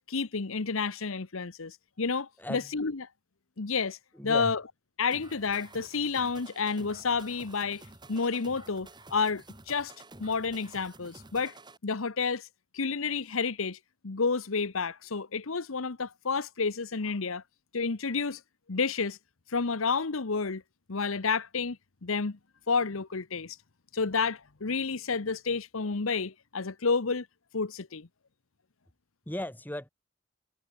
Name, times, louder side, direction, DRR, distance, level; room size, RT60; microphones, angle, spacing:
voice 1, 0.1-3.0 3.6-4.0 4.2-4.6 5.0-7.8 8.1-9.9 10.2-11.5 11.8-12.5 12.7-13.8 14.0-17.4 17.7-18.4 18.7-19.2 19.5-20.6 20.9-21.8 22.0-22.4 22.7-23.6 23.9-27.3 27.5-28.1, left 4 dB, 75° left, 1.0 m, -30 dB
voice 2, 2.4-2.7 4.1-4.5 29.3-29.9, left 1 dB, 10° left, 2.1 m, -36 dB
sound 1, 5.1-11.8, right 2 dB, 20° right, 4.0 m, -51 dB
head